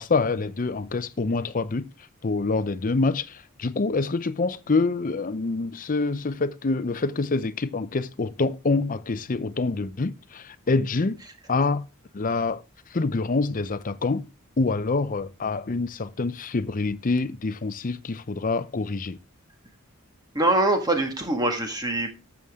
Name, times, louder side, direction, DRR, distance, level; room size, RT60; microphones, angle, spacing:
voice 1, 0.0-1.8 2.2-11.2 11.5-11.9 12.1-12.6 12.9-14.2 14.6-19.2, left 3 dB, 40° left, 0.6 m, -26 dB
voice 2, 20.3-22.1, right 2 dB, 20° right, 1.6 m, -23 dB
12.5 x 7.2 x 3.6 m
head